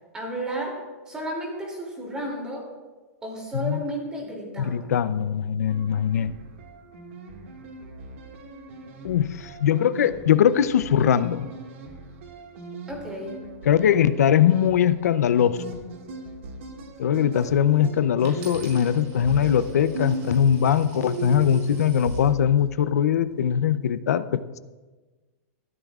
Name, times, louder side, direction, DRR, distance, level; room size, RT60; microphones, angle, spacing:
voice 1, 0.1-0.8 1.1-2.7 3.2-4.9 12.9-13.4, right 1 dB, 10° right, -1 dB, 2.7 m, -32 dB
voice 2, 4.6-6.3 9.0-11.5 13.6-15.6 17.0-24.6, left 9 dB, 85° left, 13 dB, 0.6 m, -21 dB
sound 1, 5.7-22.8, right 2 dB, 50° right, 1.9 m, -38 dB
Coin (dropping), 18.2-22.3 23.0-23.4, right 4 dB, 35° right, 4.9 m, -48 dB
20.5 x 14.0 x 2.4 m, 1.3 s
supercardioid pair, 175°, 8 cm